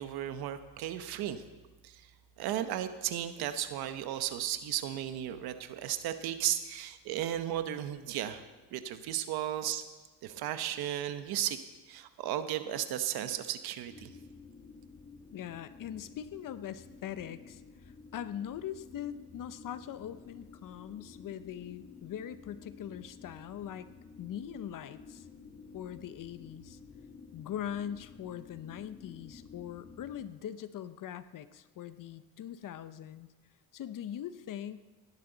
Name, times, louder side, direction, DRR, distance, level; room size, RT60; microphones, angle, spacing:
voice 1, 0.0-1.4 1.8-2.1 2.4-8.4 8.7-9.8 10.2-11.6 11.9-14.1, right 11 dB, 85° right, 10 dB, 1.0 m, -35 dB
sound 1, 13.9-30.2, left 4 dB, 35° left, 1.2 m, -52 dB
voice 2, 15.3-17.6 18.1-23.9 24.2-25.3 25.7-26.8 27.3-33.3 33.7-34.8, left 10 dB, 60° left, 13 dB, 0.8 m, -41 dB
17.5 x 11.5 x 4.0 m, 1.2 s
cardioid pair, 95°, 36 cm